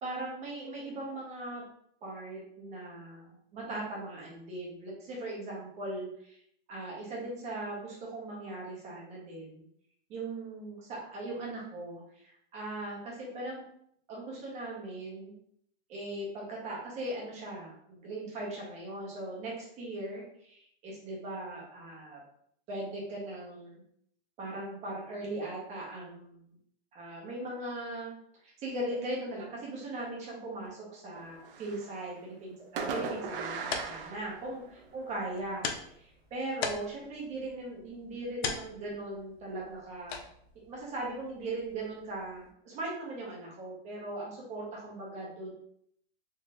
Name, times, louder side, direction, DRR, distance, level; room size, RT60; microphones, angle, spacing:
voice 1, 0.0-1.6 2.0-6.4 6.7-9.6 10.1-13.6 14.1-15.3 15.9-22.2 22.7-23.8 24.4-26.5 26.9-28.1 28.4-36.0 36.3-40.2 40.5-45.5, right 2 dB, 20° right, -3 dB, 1.1 m, -39 dB
Fireworks, 31.1-32.1 32.8-35.0, right 5 dB, 65° right, 0.6 m, -38 dB
sound 1, 33.2-42.5, left 6 dB, 80° left, 0.7 m, -42 dB
3.9 x 3.1 x 2.6 m, 0.68 s
supercardioid pair, 160°, 31 cm